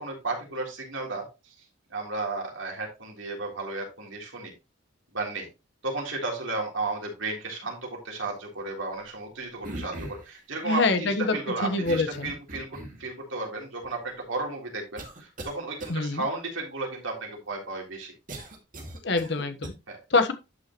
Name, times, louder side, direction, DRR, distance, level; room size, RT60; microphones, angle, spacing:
voice 1, 0.0-1.5 1.9-4.5 5.1-5.5 5.8-18.1 19.9-20.0, right 3 dB, 80° right, 3.6 m, -34 dB
sound 1, 9.6-10.3 11.8-13.1 13.8-13.9 15.0-15.5 15.8-15.9 18.3-19.7, right 1 dB, 45° right, 2.3 m, -39 dB
voice 2, 10.6-11.4 11.6-12.3 15.9-16.2 19.0-19.7 20.1-20.3, left 3 dB, 60° left, 1.2 m, -25 dB
11.0 x 6.4 x 3.0 m
head